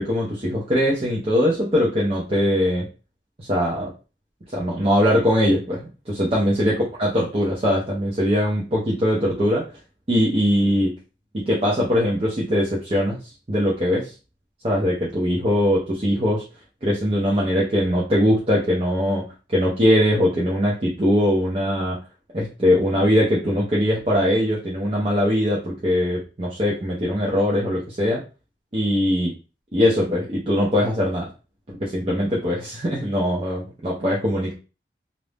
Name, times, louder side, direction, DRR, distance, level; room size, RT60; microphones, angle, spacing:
voice 1, 0.0-2.8 3.4-3.9 4.5-6.7 7.0-9.6 10.1-10.9 11.5-13.2 13.5-14.1 14.6-16.4 16.8-19.2 19.5-22.0 22.3-28.2 28.7-29.3 29.7-31.3 31.8-34.5, equal, 35° right, -4 dB, 0.6 m, -21 dB
2.6 x 2.0 x 3.3 m, 0.31 s
head